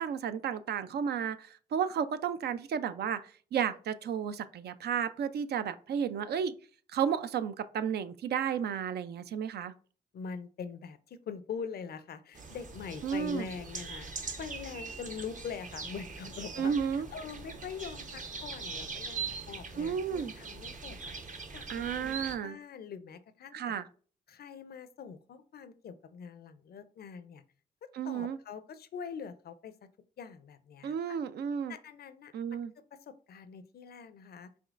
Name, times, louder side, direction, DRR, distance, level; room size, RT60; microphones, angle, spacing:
voice 1, 0.0-6.5 6.9-9.7 13.0-13.5 16.6-17.1 19.8-20.3 21.7-22.6 23.5-23.9 27.9-28.4 30.8-31.7 32.3-32.7, right 7 dB, 65° right, 0.4 m, -32 dB
voice 2, 10.1-14.1 14.4-21.1 21.5-23.8 24.3-27.4 28.0-29.7 30.2-31.2 31.7-32.6 32.9-34.5, left 6 dB, 60° left, 0.5 m, -43 dB
sound 1, 12.3-22.4, right 4 dB, 45° right, 0.8 m, -42 dB
5.1 x 3.2 x 2.4 m
supercardioid pair, 55°, 18 cm